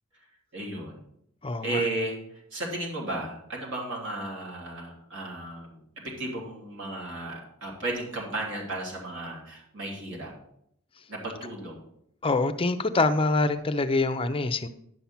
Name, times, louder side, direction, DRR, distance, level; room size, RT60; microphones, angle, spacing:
voice 1, 0.5-1.0 1.6-10.3 11.1-11.8, right 2 dB, 55° right, -2 dB, 3.0 m, -34 dB
voice 2, 1.4-1.8 12.2-14.7, left 3 dB, 25° left, 10 dB, 0.5 m, -25 dB
11.0 x 5.8 x 5.7 m, 0.74 s
head